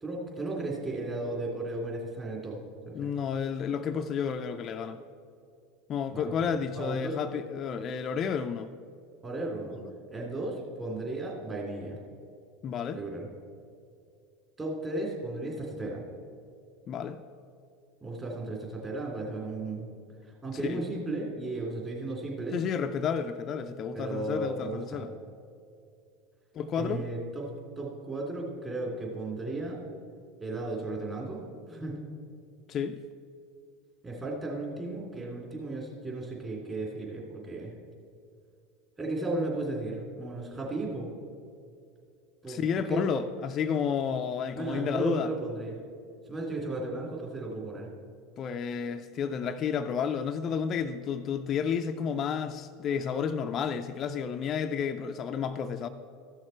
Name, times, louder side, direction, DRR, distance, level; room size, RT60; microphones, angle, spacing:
voice 1, 0.0-2.6 3.0-3.1 6.1-7.2 9.2-9.8 10.1-12.0 12.9-13.3 14.6-16.0 18.0-19.9 20.3-22.6 23.9-25.0 26.8-27.5 27.8-29.8 30.4-31.4 31.7-32.0 34.0-37.7 39.0-41.1 42.4-43.0 44.5-45.8 46.3-47.9, right 2 dB, 20° right, 2.8 m, -35 dB
voice 2, 2.9-5.0 5.9-8.7 12.6-13.0 16.9-17.2 20.5-20.8 22.5-25.1 26.5-27.1 32.7-33.0 42.5-45.3 48.4-55.9, left 7 dB, 40° left, 0.4 m, -31 dB
14.0 x 6.4 x 4.4 m
hypercardioid pair, 85°, 0 cm